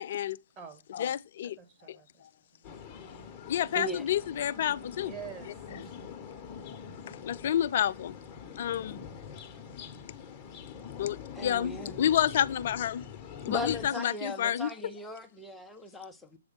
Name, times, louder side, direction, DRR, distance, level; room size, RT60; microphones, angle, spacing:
voice 1, 0.0-0.4 0.9-1.6 1.9-2.0 3.5-5.1 7.1-8.2 8.6-9.0 11.0-13.0 13.5-14.7, left 10 dB, 50° left, 0.3 m, -29 dB
voice 2, 0.6-1.1 1.6-2.2 2.5-2.7 5.0-5.9 9.5-10.1, right 7 dB, 20° right, 1.5 m, -48 dB
sound 1, 2.6-13.9, left 7 dB, 25° left, 1.0 m, -44 dB
voice 3, 11.4-12.0 13.5-16.4, left 1 dB, 5° left, 0.8 m, -38 dB
8.0 x 3.3 x 5.5 m
figure-of-eight pair, 120°, 0 cm